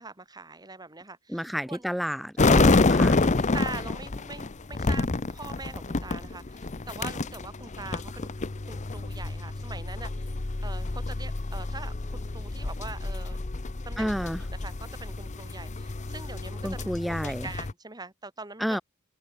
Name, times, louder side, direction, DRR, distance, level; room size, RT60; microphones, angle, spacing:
voice 1, 0.0-1.8 2.4-2.8 3.2-8.3 8.6-10.3 10.6-13.4 13.8-18.7, right 3 dB, 20° right, 2.6 m, -42 dB
voice 2, 1.3-3.2 14.0-14.4 16.6-17.5 18.6-18.8, equal, ahead, 0.8 m, -30 dB
sound 1, 2.4-17.7, left 3 dB, 35° left, 0.7 m, -28 dB
head